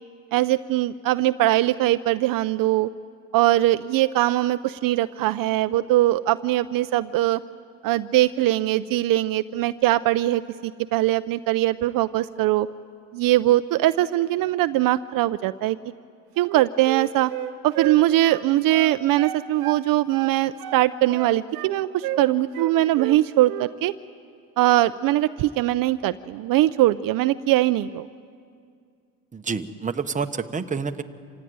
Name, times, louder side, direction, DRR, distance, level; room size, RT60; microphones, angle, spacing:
voice 1, 0.3-2.9 3.3-7.4 7.8-12.7 13.1-15.8 16.4-17.3 17.6-23.9 24.6-28.1, right 15 dB, 65° right, 12 dB, 0.6 m, -21 dB
Wind instrument woodwind instrument, 16.4-19.8 20.1-21.7 22.0-22.2 22.5-23.2 23.4-23.7, right 13 dB, 90° right, 1.2 m, -32 dB
voice 2, 29.3-31.0, right 5 dB, 20° right, 7 dB, 1.0 m, -28 dB
26.5 x 16.5 x 9.4 m, 2.2 s
cardioid pair, 115°, 36 cm